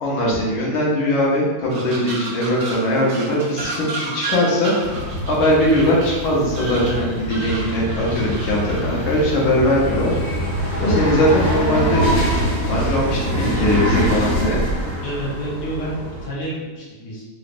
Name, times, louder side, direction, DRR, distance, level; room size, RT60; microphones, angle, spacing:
voice 1, 0.0-4.7 5.3-10.1 10.8-12.0 12.7-14.6, left 1 dB, 90° left, -4 dB, 1.7 m, -20 dB
sound 1, 1.7-11.5 11.9-13.0 13.3-13.9 14.4-15.0 15.6-15.9, right 3 dB, 85° right, 0.7 m, -34 dB
sound 2, 4.8-16.3, equal, 40° left, 1.3 m, -24 dB
voice 2, 15.0-17.3, right 1 dB, 65° left, -6 dB, 1.5 m, -29 dB
3.9 x 3.1 x 2.5 m, 1.4 s
omnidirectional pair, 2.1 m